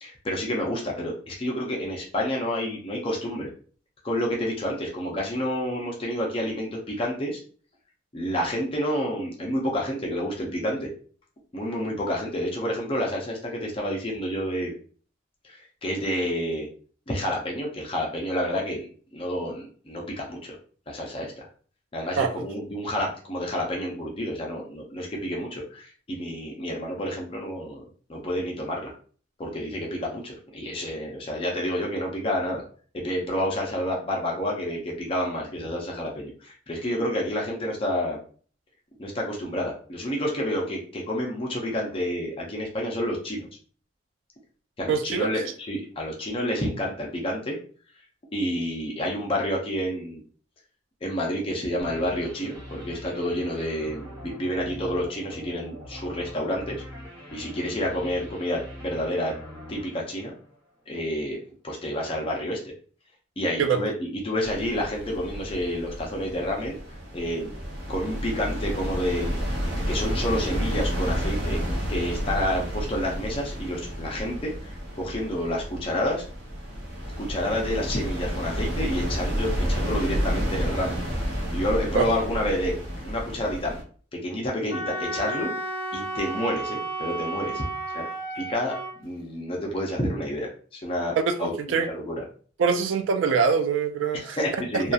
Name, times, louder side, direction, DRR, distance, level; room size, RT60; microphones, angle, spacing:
voice 1, 0.0-3.5 4.0-7.4 8.1-10.9 11.5-14.7 15.4-16.7 17.1-18.9 19.1-20.6 20.9-21.3 21.9-27.8 28.1-28.9 29.4-32.6 32.9-38.2 39.0-43.5 44.8-47.6 48.3-50.2 51.0-56.8 57.3-59.3 59.7-60.3 60.9-61.4 61.6-62.6 63.4-66.8 67.1-67.5 67.9-69.4 69.9-71.6 71.9-76.2 77.2-81.0 81.5-82.8 83.0-83.8 84.1-85.5 85.9-87.6 87.9-88.0 88.3-91.5 91.9-92.2 94.1-94.9, equal, 30° left, -1 dB, 0.5 m, -29 dB
voice 2, 44.9-45.3 63.6-63.8 82.0-82.1 91.3-91.9 92.6-94.4 94.7-94.9, right 5 dB, 85° right, 6 dB, 0.3 m, -24 dB
sound 1, 51.8-60.8, equal, 10° left, 1.3 m, -42 dB
sound 2, 64.4-83.8, equal, 60° right, 0.7 m, -30 dB
Wind instrument woodwind instrument, 84.7-88.9, right 2 dB, 50° left, 0.9 m, -32 dB
2.8 x 2.3 x 2.4 m, 0.43 s
head